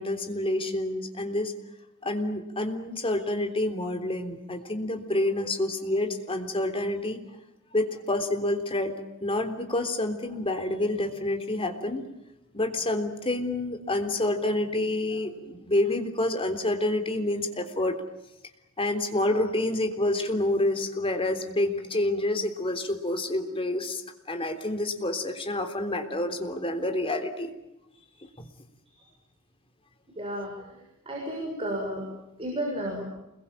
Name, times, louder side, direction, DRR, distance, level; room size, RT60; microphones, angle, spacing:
voice 1, 0.0-1.5 2.0-7.2 7.7-8.9 9.2-12.0 12.5-18.0 18.8-24.0 24.3-27.5 28.4-28.5, left 1 dB, 25° left, 6 dB, 3.5 m, -28 dB
voice 2, 30.2-30.5 31.1-32.0 32.4-33.1, right 1 dB, 25° right, 0 dB, 6.8 m, -32 dB
29.0 x 22.5 x 8.9 m, 0.89 s
head